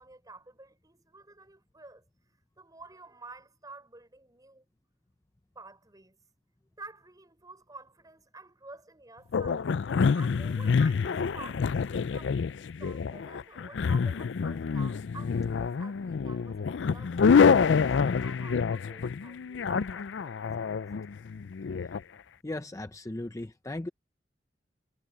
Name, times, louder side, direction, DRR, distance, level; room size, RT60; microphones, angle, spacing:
voice 1, 0.0-2.0 2.6-4.7 5.5-6.2 6.8-9.7 10.1-12.5 12.8-20.7, right 3 dB, 20° right, 5.7 m, -50 dB
sound 1, 9.3-22.0, left 5 dB, 80° left, 0.4 m, -27 dB
voice 2, 22.4-23.9, left 1 dB, 20° left, 0.6 m, -37 dB
head